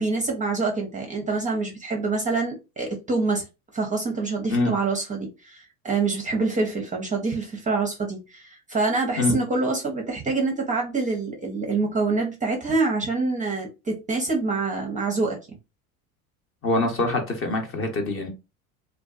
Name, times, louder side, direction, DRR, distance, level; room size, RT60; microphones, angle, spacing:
voice 1, 0.0-3.5 3.7-15.4, right 3 dB, 20° right, 0.6 m, -26 dB
voice 2, 16.6-18.3, left 2 dB, 30° left, 0.8 m, -24 dB
2.4 x 2.3 x 2.4 m
hypercardioid pair, 85°, 43 cm